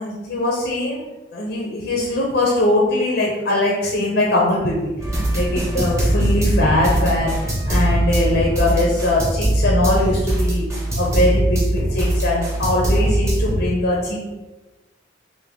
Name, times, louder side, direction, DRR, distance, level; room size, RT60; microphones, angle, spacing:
voice 1, 0.0-4.9 5.3-7.3 7.7-10.7 11.0-14.2, left 1 dB, 60° left, -3 dB, 0.5 m, -21 dB
sound 1, 5.0-13.6, right 1 dB, 15° right, 0.8 m, -21 dB
3.3 x 2.2 x 3.5 m, 1.1 s
head